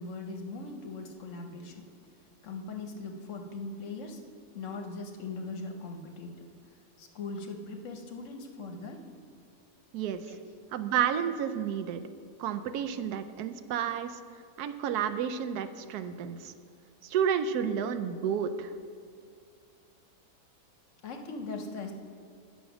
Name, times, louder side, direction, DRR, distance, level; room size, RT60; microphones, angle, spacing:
voice 1, 0.0-1.9 2.4-4.2 4.5-6.5 7.0-9.0 10.3-10.4 21.0-21.9, left 3 dB, 60° left, 4 dB, 1.0 m, -40 dB
voice 2, 10.7-12.0 12.4-14.2 14.6-16.5 17.0-18.7, right 8 dB, 80° right, 10 dB, 1.1 m, -31 dB
9.3 x 6.3 x 5.9 m, 2.2 s
omnidirectional pair, 1.7 m